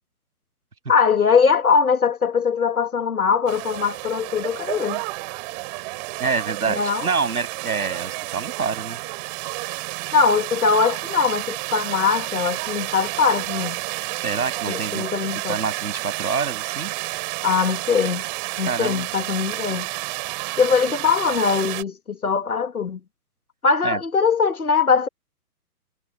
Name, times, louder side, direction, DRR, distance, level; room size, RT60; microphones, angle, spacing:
voice 1, 0.9-5.0 6.7-7.1 10.1-13.8 14.7-15.6 17.4-18.2 18.6-19.9 20.6-23.0 23.6-25.1, left 5 dB, 70° left, 2.2 m, -21 dB
sound 1, 3.5-21.8, right 24 dB, 30° right, 4.2 m, -30 dB
voice 2, 6.2-9.0 14.2-15.0 15.5-16.9 18.7-19.0 23.8-24.0, right 5 dB, 70° right, 7.5 m, -26 dB
figure-of-eight pair, 125°, 46 cm